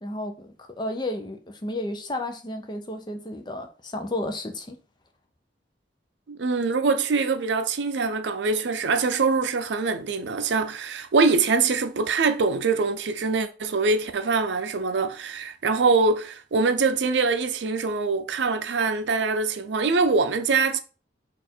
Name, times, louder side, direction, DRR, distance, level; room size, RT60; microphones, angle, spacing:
voice 1, 0.0-4.8, left 1 dB, 25° left, 0.6 m, -32 dB
voice 2, 6.3-20.8, right 4 dB, 85° right, 0.5 m, -23 dB
4.2 x 2.6 x 4.3 m
head